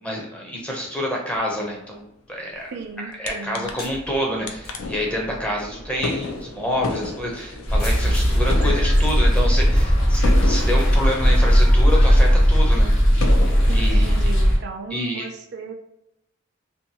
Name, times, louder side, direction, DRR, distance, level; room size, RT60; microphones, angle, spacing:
voice 1, 0.0-2.7 3.0-12.9 13.7-14.3 14.9-15.2, equal, 5° left, -2 dB, 0.5 m, -28 dB
voice 2, 2.7-3.7 13.7-15.7, right 4 dB, 50° right, 3 dB, 0.4 m, -35 dB
sound 1, 3.3-3.4 3.5-4.1 4.5-12.3 12.7-12.8 13.2-14.0, left 3 dB, 90° left, 0.4 m, -32 dB
sound 2, 3.6-9.9, left 1 dB, 45° left, 0.6 m, -42 dB
sound 3, 7.7-14.6, equal, 70° left, 0.9 m, -17 dB
2.6 x 2.2 x 2.7 m, 0.82 s
head